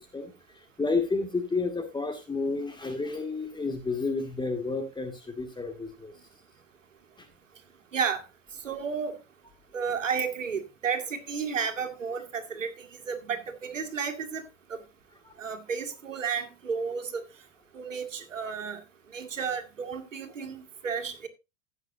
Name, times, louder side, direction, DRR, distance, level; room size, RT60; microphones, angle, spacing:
voice 1, 0.8-6.1, left 3 dB, 10° left, 2.2 m, -30 dB
voice 2, 8.6-9.2 9.7-14.4 14.7-14.8 15.4-17.2 17.7-18.8 19.1-21.3, right 6 dB, 85° right, 2.3 m, -32 dB
16.0 x 8.4 x 2.7 m
figure-of-eight pair, 85°, 37 cm